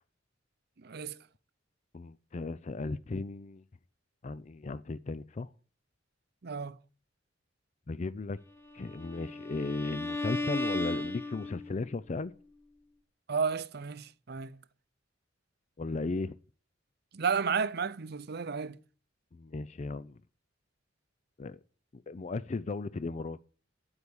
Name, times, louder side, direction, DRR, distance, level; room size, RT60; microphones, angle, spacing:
voice 1, 0.8-1.2 6.4-6.8 13.3-14.6 17.1-18.8, right 5 dB, 60° right, 0.6 m, -32 dB
voice 2, 1.9-3.6 4.2-5.5 7.9-8.4 8.7-12.3 15.8-16.4 19.3-20.2 21.4-21.6 21.9-23.4, left 3 dB, 40° left, 0.5 m, -36 dB
Bowed string instrument, 8.7-11.8, left 2 dB, 15° left, 1.2 m, -35 dB
9.8 x 8.1 x 7.0 m
head